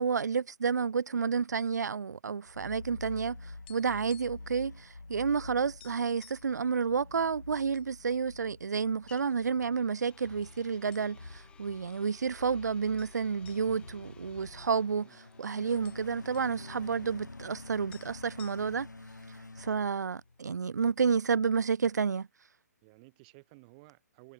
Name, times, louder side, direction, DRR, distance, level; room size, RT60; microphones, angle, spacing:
voice 1, 0.0-3.4 3.7-18.9 19.6-22.3, right 6 dB, 70° right, 0.4 m, -30 dB
sound 1, 2.5-20.6, left 2 dB, 85° left, 3.6 m, -48 dB
sound 2, 3.7-4.6 4.8-5.0 5.4-5.5 5.8-6.5 7.2-7.9 8.3-8.4 9.1-9.7 10.4-10.6 10.9-11.4 11.8-11.9 13.0-15.0 15.3-15.4 15.6-16.6 17.6-17.7 17.9-19.0, left 15 dB, 35° left, 6.0 m, -58 dB
sound 3, 6.7-20.5, left 7 dB, 10° left, 5.3 m, -63 dB
voice 2, 22.8-24.3, right 28 dB, 25° right, 4.0 m, -56 dB
figure-of-eight pair, 135°, 10 cm